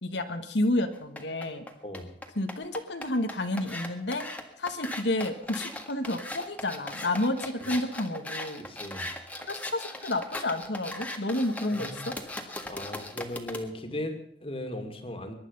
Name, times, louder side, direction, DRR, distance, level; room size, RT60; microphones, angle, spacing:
voice 1, 0.0-1.6 2.3-4.2 4.6-8.6 9.5-12.1, left 1 dB, 75° left, 6 dB, 1.6 m, -30 dB
sound 1, 0.9-13.6, left 1 dB, 10° left, 1.7 m, -39 dB
voice 2, 8.6-9.1 11.7-12.2 12.7-15.4, left 1 dB, 30° left, 6 dB, 2.5 m, -37 dB
22.5 x 11.0 x 5.5 m, 0.73 s
head